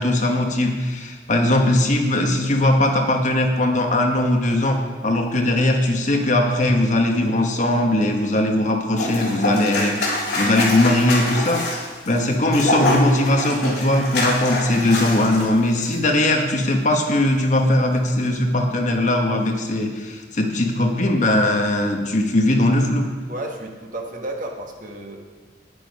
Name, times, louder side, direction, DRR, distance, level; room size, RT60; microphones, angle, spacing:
voice 1, 0.0-10.0 10.3-23.1, left 1 dB, 40° left, 3 dB, 1.2 m, -20 dB
sound 1, 9.0-15.5 15.8-16.0, left 2 dB, 60° left, 3.5 m, -25 dB
voice 2, 23.3-25.2, right 1 dB, 45° right, 1 dB, 1.5 m, -32 dB
9.9 x 9.8 x 5.3 m, 1.4 s
head